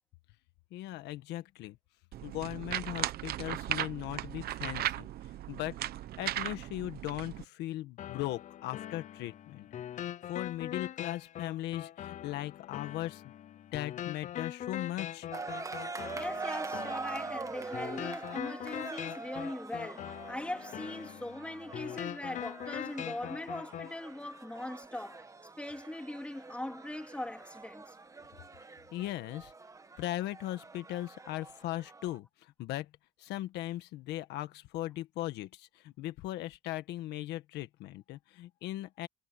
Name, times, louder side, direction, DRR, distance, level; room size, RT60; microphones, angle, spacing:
voice 1, 0.7-1.8 2.2-5.1 5.5-5.8 6.2-13.3 13.7-15.3 28.9-29.5 30.0-32.9 33.2-39.1, left 15 dB, 85° left, 1.6 m, -38 dB
sound 1, 2.1-7.4, right 13 dB, 65° right, 1.1 m, -37 dB
sound 2, 8.0-24.0, left 11 dB, 45° left, 0.5 m, -42 dB
sound 3, 15.3-32.2, right 4 dB, 20° right, 1.4 m, -44 dB
voice 2, 16.1-25.3 25.6-28.0, left 1 dB, 5° left, 3.4 m, -41 dB
cardioid pair, 110°, 17 cm